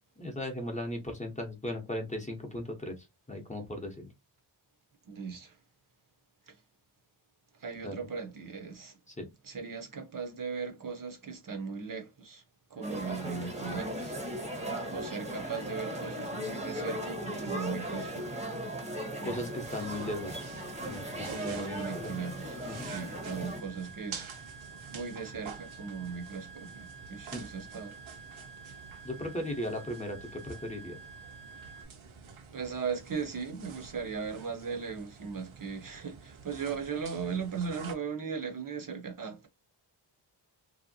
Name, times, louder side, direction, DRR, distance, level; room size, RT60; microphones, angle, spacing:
voice 1, 0.2-4.1 7.8-8.0 9.1-9.3 19.2-20.5 20.8-22.2 22.7-22.9 27.3-27.4 29.0-30.2 30.4-31.0, left 1 dB, 15° left, 0.8 m, -37 dB
voice 2, 5.1-5.6 6.5-6.6 7.6-9.0 9.4-12.4 12.7-14.2 14.6-18.4 21.2-24.2 24.9-28.0 32.5-39.5, right 6 dB, 45° right, 0.7 m, -38 dB
sound 1, 12.8-31.8, right 5 dB, 70° left, 0.8 m, -51 dB
sound 2, 12.8-23.6, equal, 15° right, 0.8 m, -37 dB
sound 3, 19.5-37.9, right 6 dB, 85° right, 0.9 m, -49 dB
3.0 x 2.7 x 2.6 m
wide cardioid pair, 160°, 47 cm